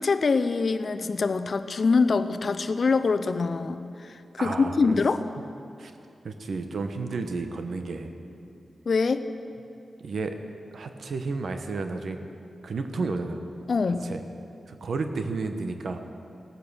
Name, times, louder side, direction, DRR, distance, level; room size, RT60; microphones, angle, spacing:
voice 1, 0.0-5.2 8.9-9.2 13.7-14.1, left 4 dB, 60° left, 11 dB, 0.6 m, -24 dB
voice 2, 4.4-5.0 5.8-5.9 6.2-8.1 10.0-10.3 10.7-12.2 12.6-13.4 13.9-14.2 14.7-16.0, right 3 dB, 75° right, 7 dB, 1.1 m, -32 dB
17.5 x 8.7 x 6.3 m, 2.7 s
cardioid pair, 55°, 0 cm